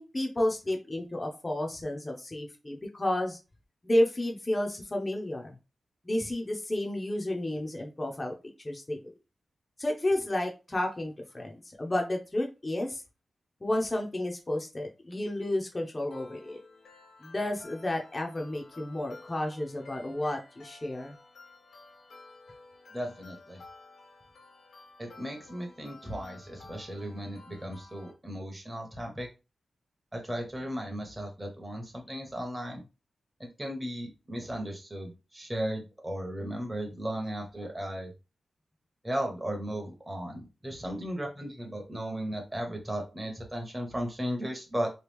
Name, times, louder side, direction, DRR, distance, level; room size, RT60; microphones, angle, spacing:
voice 1, 0.0-3.4 3.8-5.6 6.0-9.1 9.8-13.0 13.6-16.6 17.2-21.1, left 1 dB, 20° left, 1 dB, 0.6 m, -31 dB
sound 1, 16.1-28.1, left 3 dB, 80° left, 1.1 m, -53 dB
voice 2, 22.9-23.6 25.0-29.3 30.1-32.8 33.4-38.1 39.0-44.9, equal, 15° right, 1 dB, 0.9 m, -36 dB
3.0 x 2.3 x 3.4 m, 0.29 s
wide cardioid pair, 115°, 0 cm